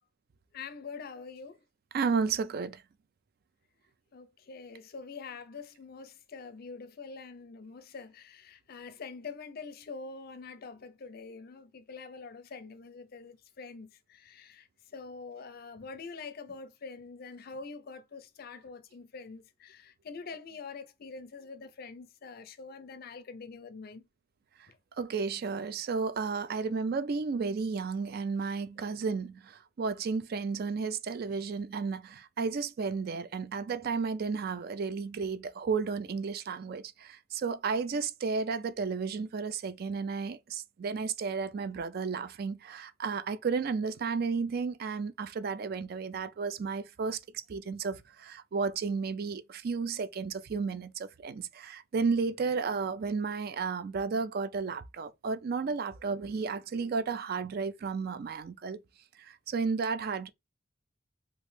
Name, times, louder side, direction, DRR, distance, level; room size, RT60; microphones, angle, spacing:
voice 1, 0.5-1.6 4.1-14.7 14.9-24.1 24.7-24.8 28.8-28.9, left 4 dB, 50° left, 0.4 m, -45 dB
voice 2, 1.9-2.8 25.0-58.8 59.2-60.3, right 5 dB, 50° right, 0.4 m, -33 dB
3.1 x 2.5 x 3.1 m
head